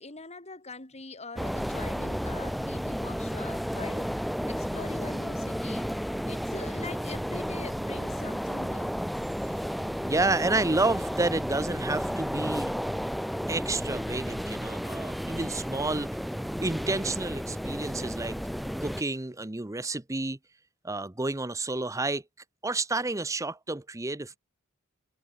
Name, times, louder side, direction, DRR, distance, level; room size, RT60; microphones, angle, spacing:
voice 1, 0.0-4.1 4.5-5.9 6.3-8.9, left 3 dB, 30° left, 4.2 m, -43 dB
sound 1, 1.4-19.0, equal, ahead, 0.3 m, -32 dB
voice 2, 10.0-12.7 13.5-16.1 16.6-18.4 18.8-20.4 20.8-22.2 22.6-24.4, right 2 dB, 15° right, 0.8 m, -30 dB
head